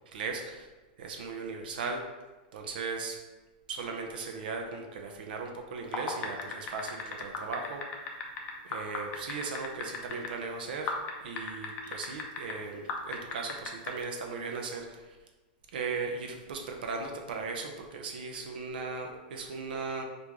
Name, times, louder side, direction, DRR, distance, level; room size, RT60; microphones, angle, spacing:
voice 1, 0.1-0.7 1.0-2.0 2.5-3.2 3.7-7.8 8.6-10.9 11.2-15.2 15.7-20.0, right 4 dB, 80° right, 2 dB, 0.5 m, -37 dB
sound 1, 5.8-10.3 10.9-12.5 12.9-13.9, left 5 dB, 25° left, 0.4 m, -35 dB
3.0 x 2.5 x 3.5 m, 1.2 s
supercardioid pair, 160°, 5 cm